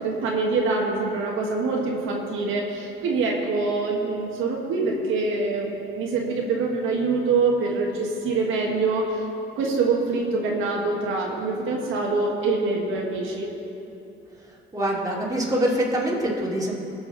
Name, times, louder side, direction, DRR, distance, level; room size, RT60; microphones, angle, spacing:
voice 1, 0.0-9.2 9.6-13.5, right 3 dB, 90° right, -2 dB, 1.6 m, -25 dB
voice 2, 14.7-16.7, right 1 dB, 20° right, -4 dB, 2.7 m, -24 dB
19.0 x 7.0 x 4.1 m, 2.9 s
cardioid pair, 90°, 20 cm